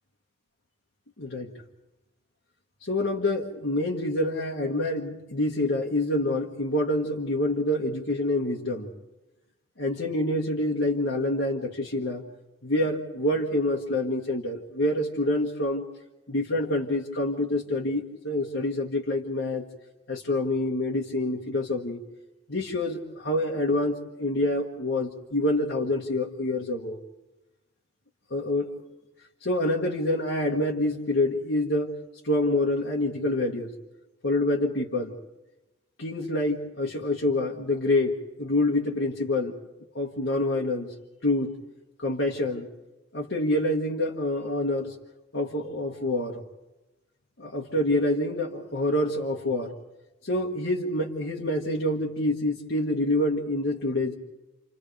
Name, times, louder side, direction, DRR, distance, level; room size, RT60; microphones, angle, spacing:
voice 1, 1.2-1.5 2.8-8.9 9.8-12.2 12.6-15.8 16.3-19.7 20.1-22.0 22.5-27.0 28.3-28.7 29.4-31.9 32.2-33.7 34.2-35.2 36.0-39.5 40.0-40.9 41.2-41.5 42.0-42.7 43.1-44.9 45.3-46.4 47.4-49.7 50.2-54.2, left 1 dB, 75° left, -1 dB, 1.8 m, -27 dB
29.0 x 28.5 x 3.5 m, 1.0 s
head